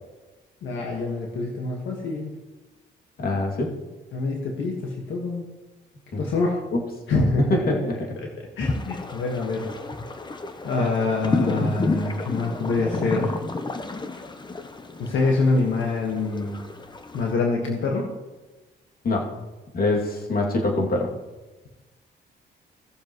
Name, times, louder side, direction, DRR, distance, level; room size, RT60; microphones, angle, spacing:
voice 1, 0.6-2.4 4.1-5.5 6.2-6.6 7.1-7.4 8.6-9.7 10.6-13.4 15.0-16.6 17.1-18.1, left 3 dB, 75° left, -1 dB, 1.6 m, -25 dB
voice 2, 3.2-3.7 6.1-6.2 6.7-6.8 7.5-8.0 19.0-19.3 19.7-21.1, left 2 dB, 50° left, -1 dB, 2.6 m, -24 dB
sound 1, 8.6-17.3, left 3 dB, 20° left, 0.9 m, -31 dB
17.5 x 7.2 x 3.1 m, 1.2 s
cardioid pair, 90°, 20 cm